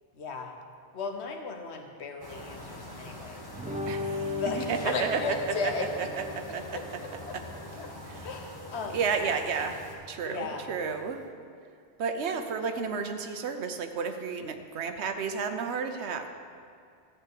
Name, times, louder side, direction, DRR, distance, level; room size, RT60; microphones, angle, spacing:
voice 1, 0.1-0.5 0.9-3.5 4.3-6.1 6.7-7.4 7.8-7.9 8.2-9.0 10.2-10.7, left 4 dB, 75° left, 3 dB, 1.3 m, -36 dB
sound 1, 2.2-10.0, left 1 dB, 20° left, 1.4 m, -44 dB
sound 2, 3.5-11.2, left 2 dB, 10° right, 0.4 m, -39 dB
voice 2, 3.9-5.4 6.0-6.8 8.9-11.2 12.0-16.3, right 5 dB, 80° right, 7 dB, 1.1 m, -32 dB
13.0 x 4.4 x 8.4 m, 2.3 s
omnidirectional pair, 1.1 m